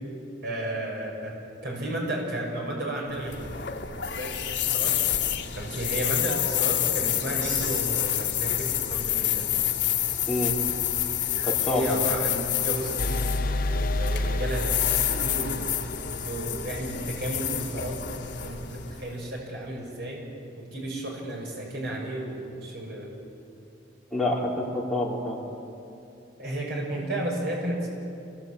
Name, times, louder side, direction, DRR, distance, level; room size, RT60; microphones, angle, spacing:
voice 1, 0.4-1.4 1.6-3.5 3.9-4.9 5.5-9.5 11.6-13.2 13.7-15.7 16.0-20.2 20.6-23.1 26.4-27.9, right 1 dB, 60° right, -2 dB, 6.3 m, -33 dB
sound 1, 3.1-19.3, left 10 dB, 70° left, 2.3 m, -28 dB
Crash cymbal, 7.4-9.1, right 3 dB, 85° right, 6.4 m, -42 dB
voice 2, 11.4-12.0 24.1-25.4, left 1 dB, ahead, -5 dB, 4.4 m, -27 dB
sound 2, 13.0-16.7, left 2 dB, 50° left, 0.7 m, -29 dB
27.5 x 21.0 x 8.6 m, 2.7 s
head